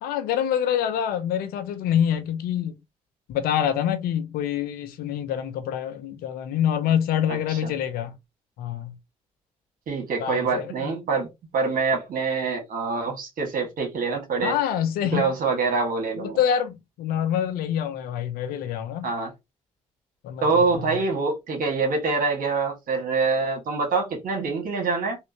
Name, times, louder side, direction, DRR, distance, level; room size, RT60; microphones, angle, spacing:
voice 1, 0.0-2.7 3.3-8.1 8.6-8.9 10.2-10.9 14.4-15.3 16.2-19.1 20.2-20.4, left 9 dB, 80° left, 0.7 m, -26 dB
voice 2, 7.3-7.7 9.9-14.5 15.1-16.4 19.0-19.3 20.4-25.2, right 4 dB, 65° right, 1.6 m, -25 dB
3.6 x 2.9 x 2.9 m
hypercardioid pair, 50°, 15 cm